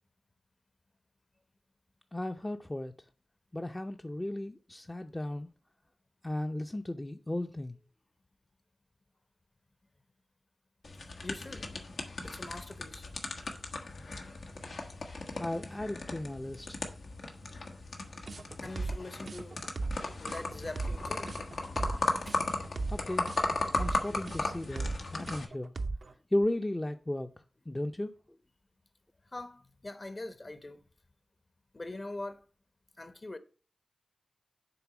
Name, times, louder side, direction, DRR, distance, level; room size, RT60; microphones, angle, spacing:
voice 1, 2.1-2.9 3.5-5.5 6.2-7.8 15.4-16.8 22.9-23.3 23.8-25.7 26.3-27.3 27.7-28.1, left 1 dB, 20° left, 0.5 m, -35 dB
sound 1, 10.8-25.4, left 2 dB, 85° left, 1.2 m, -37 dB
voice 2, 11.2-11.7 12.2-13.1 18.6-19.6 20.2-21.3 22.2-22.4 29.3-30.8 31.7-32.4 33.0-33.4, left 2 dB, 45° left, 0.9 m, -43 dB
sound 2, 18.3-26.1, right 3 dB, 65° right, 0.6 m, -37 dB
7.0 x 4.0 x 6.1 m
cardioid pair, 45°, 0 cm